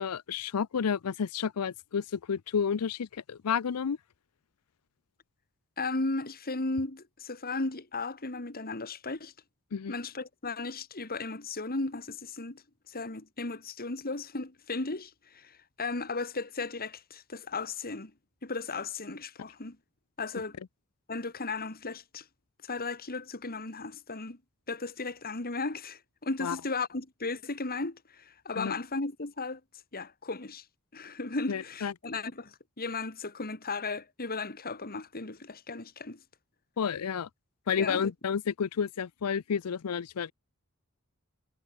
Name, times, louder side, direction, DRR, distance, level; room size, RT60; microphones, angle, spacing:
voice 1, 0.0-4.0 9.7-9.9 26.4-26.6 28.6-28.7 31.5-31.9 36.8-37.3 37.7-40.3, left 7 dB, 90° left, 0.5 m, -31 dB
voice 2, 5.8-9.3 9.9-18.1 18.4-19.8 20.2-20.6 21.1-22.3 22.6-24.4 24.7-29.6 29.9-30.6 30.9-36.2 37.8-38.1, left 3 dB, 45° left, 2.3 m, -35 dB
head